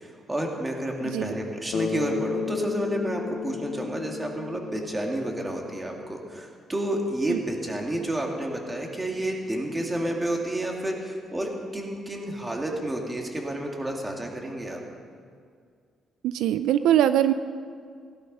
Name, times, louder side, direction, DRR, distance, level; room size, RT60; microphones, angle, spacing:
voice 1, 0.0-14.8, right 1 dB, 15° right, 1 dB, 2.4 m, -30 dB
voice 2, 1.0-1.4 7.3-7.4 16.2-17.3, right 11 dB, 90° right, 12 dB, 0.4 m, -22 dB
Bass guitar, 1.7-5.9, left 7 dB, 75° left, 0.8 m, -33 dB
16.5 x 11.5 x 5.5 m, 2.1 s
cardioid pair, 90°, 0 cm